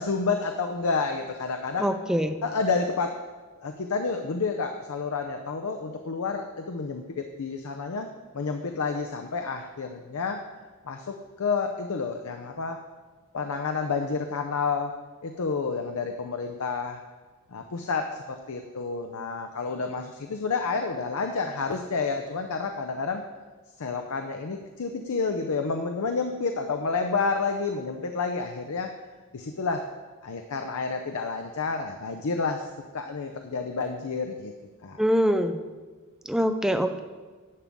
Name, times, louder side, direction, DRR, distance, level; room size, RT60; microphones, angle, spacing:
voice 1, 0.0-1.9 2.4-3.2 3.6-8.1 8.3-10.4 10.8-12.8 13.3-17.0 17.5-23.2 23.8-28.9 29.3-29.9 30.2-32.7 32.9-34.5 34.8-35.0, left 4 dB, 70° left, 5 dB, 0.6 m, -29 dB
voice 2, 1.8-2.4 35.0-35.6 36.3-37.0, equal, 5° right, 7 dB, 0.5 m, -24 dB
11.0 x 7.3 x 3.6 m, 1.4 s
head